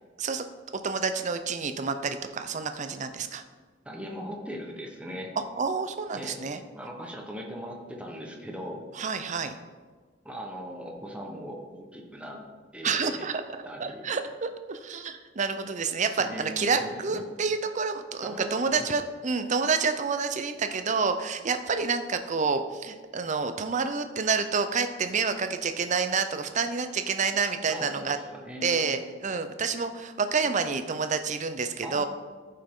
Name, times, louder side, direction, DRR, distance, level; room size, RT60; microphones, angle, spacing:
voice 1, 0.8-3.4 5.6-6.6 8.9-9.6 12.8-13.4 13.8-28.2 28.6-32.0, right 5 dB, 40° right, 9 dB, 0.6 m, -28 dB
voice 2, 3.8-5.3 6.1-6.5 6.7-8.8 10.2-12.4 12.7-13.3 13.6-14.1 16.2-17.2 18.2-18.9 27.7-28.9 31.8-32.1, equal, 5° right, 0 dB, 1.1 m, -39 dB
14.0 x 5.6 x 3.7 m, 1.4 s
head